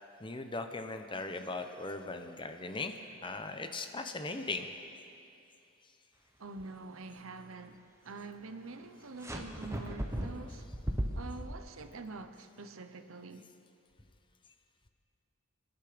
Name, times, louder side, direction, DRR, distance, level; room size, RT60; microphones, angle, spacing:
voice 1, 0.2-2.9 3.2-4.7, left 3 dB, 25° left, 0.9 m, -38 dB
voice 2, 6.4-10.7 11.1-13.4, right 3 dB, 85° right, 0.9 m, -46 dB
sound 1, 9.2-11.6, equal, 15° right, 1.2 m, -36 dB
26.0 x 10.5 x 5.1 m
head